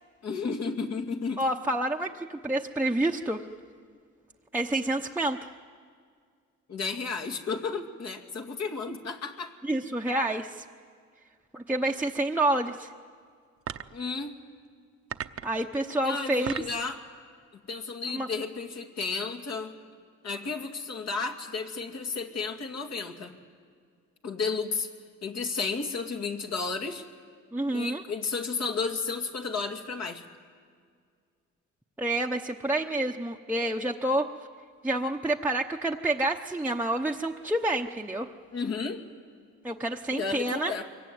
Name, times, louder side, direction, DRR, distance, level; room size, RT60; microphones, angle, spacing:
voice 1, 0.2-1.4 6.7-9.5 13.9-14.4 16.0-17.0 17.7-19.7 20.2-23.3 24.2-24.9 25.2-27.0 27.7-30.2 38.5-39.0 40.1-40.8, left 4 dB, 60° left, 4 dB, 2.4 m, -32 dB
voice 2, 1.4-3.4 4.5-5.5 9.6-10.6 11.5-12.9 15.4-16.5 18.1-18.3 27.5-28.0 32.0-34.3 34.8-38.3 39.6-40.7, right 1 dB, 5° right, -1 dB, 0.9 m, -28 dB
sound 1, 13.6-14.0 15.1-15.6 16.2-16.8, right 9 dB, 50° right, 0.9 m, -37 dB
24.0 x 22.5 x 9.4 m, 2.1 s
cardioid pair, 90°, 30 cm